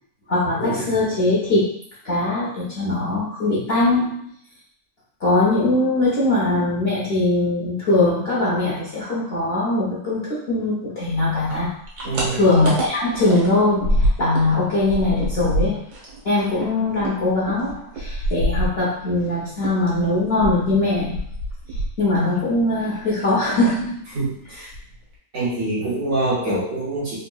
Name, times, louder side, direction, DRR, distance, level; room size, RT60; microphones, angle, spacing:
voice 1, 0.3-1.7 2.0-4.3 5.2-11.7 12.3-15.8 16.2-21.2 22.0-24.0, left 2 dB, 50° left, -7 dB, 0.9 m, -21 dB
sound 1, 11.5-14.5 14.8-19.3 19.6-22.4 22.6-23.3 23.6-23.9 24.2-24.3 24.6-25.1, equal, 80° right, 1.5 m, -26 dB
voice 2, 12.0-12.5 24.1-24.7 25.3-27.2, right 2 dB, 50° right, -8 dB, 1.2 m, -25 dB
3.7 x 2.7 x 2.3 m, 0.67 s
omnidirectional pair, 1.7 m